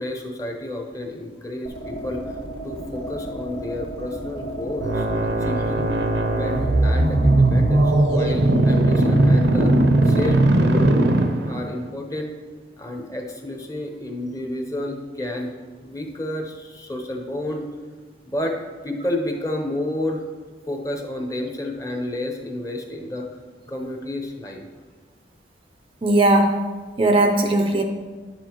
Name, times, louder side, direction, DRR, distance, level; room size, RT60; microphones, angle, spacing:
voice 1, 0.0-2.2 2.6-5.9 6.3-9.7 10.0-11.1 11.4-12.3 12.8-15.5 15.8-17.7 18.3-18.6 18.8-20.2 20.7-23.3 23.7-24.6, left 1 dB, 20° left, 2 dB, 0.8 m, -30 dB
sound 1, 1.6-10.3, right 1 dB, 75° left, 1.7 m, -33 dB
sound 2, 4.8-11.8, right 2 dB, 75° right, 0.7 m, -18 dB
voice 2, 26.0-26.6 27.0-27.8, right 1 dB, 30° right, 4 dB, 0.5 m, -18 dB
10.5 x 7.5 x 3.0 m, 1.4 s
head